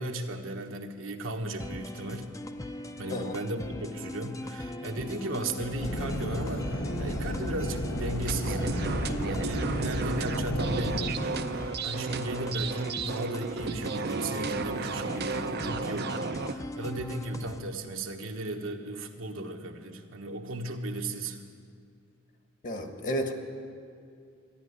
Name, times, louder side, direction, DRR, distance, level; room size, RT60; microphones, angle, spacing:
voice 1, 0.0-2.3 3.0-21.4, right 2 dB, 80° right, 3 dB, 1.3 m, -36 dB
sound 1, 1.6-17.6, left 1 dB, 15° left, 0.6 m, -41 dB
sound 2, 5.8-11.1, equal, 80° left, 1.4 m, -32 dB
sound 3, 8.3-16.5, right 4 dB, 55° right, 0.6 m, -33 dB
voice 2, 22.6-23.3, equal, 40° left, 5 dB, 1.4 m, -32 dB
13.5 x 10.5 x 9.6 m, 2.3 s
head